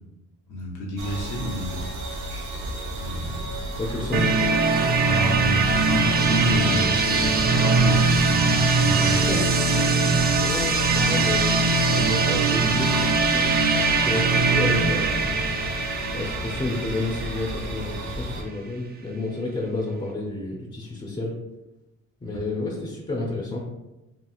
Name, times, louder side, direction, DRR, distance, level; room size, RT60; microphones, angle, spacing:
voice 1, 0.5-1.8 2.9-3.6 5.1-9.4 22.3-22.4, left 1 dB, 75° left, -3 dB, 0.6 m, -29 dB
sound 1, 1.0-18.4, right 1 dB, 70° right, 0.7 m, -34 dB
voice 2, 3.8-4.3 9.3-9.5 10.2-15.4 16.1-21.3 22.2-23.6, left 2 dB, 20° left, -2 dB, 0.5 m, -31 dB
sound 2, 4.1-17.9, right 4 dB, 30° right, 0.4 m, -21 dB
2.9 x 2.8 x 2.3 m, 1.0 s
cardioid pair, 90°, 30 cm